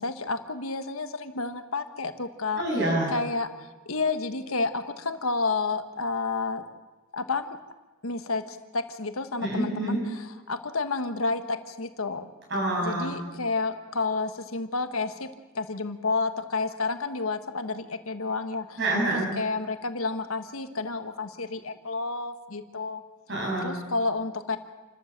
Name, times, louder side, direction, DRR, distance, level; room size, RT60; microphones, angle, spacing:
voice 1, 0.0-2.6 3.1-3.5 3.8-6.6 7.1-7.5 8.0-12.2 12.8-15.3 15.5-18.8 19.1-23.0 23.6-24.6, left 3 dB, 85° left, 9 dB, 1.4 m, -30 dB
voice 2, 2.6-3.1 9.4-10.0 12.5-13.1 18.8-19.3 23.3-23.7, right 1 dB, 55° right, -1 dB, 7.7 m, -27 dB
28.5 x 13.0 x 7.5 m, 1.2 s
head